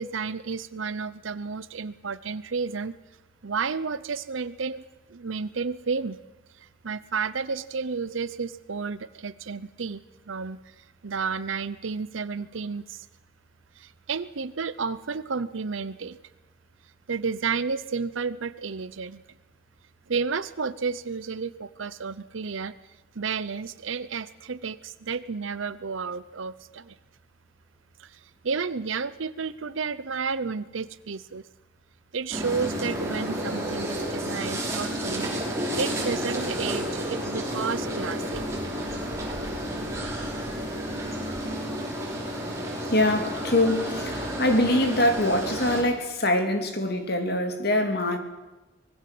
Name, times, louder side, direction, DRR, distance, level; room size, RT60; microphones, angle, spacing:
voice 1, 0.0-2.9 3.4-4.8 5.1-6.2 6.5-10.0 10.3-13.1 13.8-16.2 17.1-19.2 20.1-22.7 23.2-27.0 28.0-31.4 32.1-35.3 35.8-38.4, right 5 dB, 75° right, 14 dB, 0.7 m, -31 dB
sound 1, 32.3-45.8, equal, 15° right, 5.7 m, -31 dB
voice 2, 42.3-48.2, left 1 dB, 50° left, 6 dB, 3.2 m, -24 dB
25.0 x 20.5 x 7.8 m, 1.1 s
head